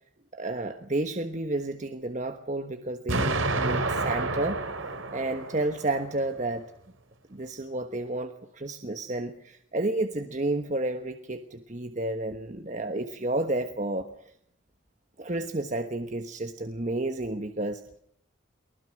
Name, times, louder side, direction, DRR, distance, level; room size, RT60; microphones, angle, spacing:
voice 1, 0.3-4.6 5.1-6.6 7.3-14.3 15.2-17.8, right 2 dB, 35° right, 7 dB, 1.3 m, -31 dB
Explosion, 3.1-6.1, right 2 dB, 85° right, 3.1 m, -29 dB
23.5 x 19.5 x 6.4 m, 0.67 s
head